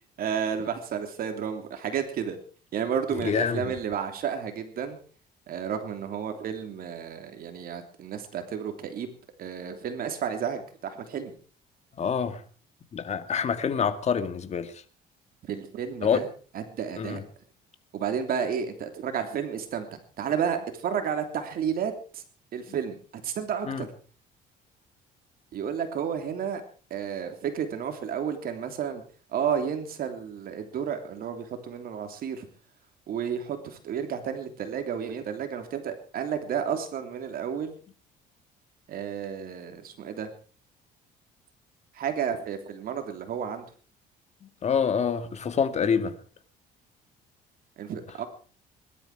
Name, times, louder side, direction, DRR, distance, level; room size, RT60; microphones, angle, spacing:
voice 1, 0.2-2.4 2.7-5.0 5.5-9.1 9.4-11.3 15.5-16.3 16.5-17.2 17.9-22.2 22.5-23.9 25.5-26.6 26.9-29.0 29.3-32.5 33.1-37.7 38.9-40.3 41.9-43.6 47.8-48.3, right 7 dB, 60° right, 3.2 m, -31 dB
voice 2, 3.1-3.7 12.0-12.4 12.9-14.7 16.0-16.2 17.0-17.2 23.7-23.8 44.6-46.1, left 7 dB, 40° left, 2.1 m, -26 dB
21.5 x 12.0 x 4.9 m
cardioid pair, 110°, 17 cm